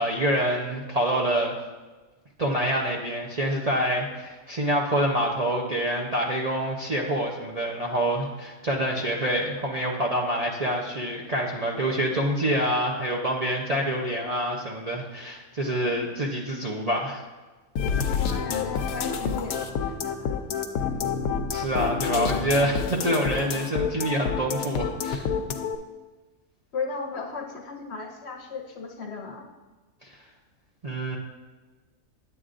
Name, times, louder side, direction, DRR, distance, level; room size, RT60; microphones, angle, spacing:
voice 1, 0.0-1.6 2.4-17.2 21.5-25.3 30.0-30.1 30.8-31.2, right 1 dB, 40° right, -3 dB, 0.5 m, -26 dB
sound 1, 17.8-25.8, left 6 dB, 90° left, 1.1 m, -28 dB
voice 2, 18.2-19.6 19.9-20.4 26.7-29.5, left 4 dB, 60° left, 3 dB, 0.9 m, -35 dB
9.2 x 8.1 x 2.5 m, 1.2 s
omnidirectional pair, 1.5 m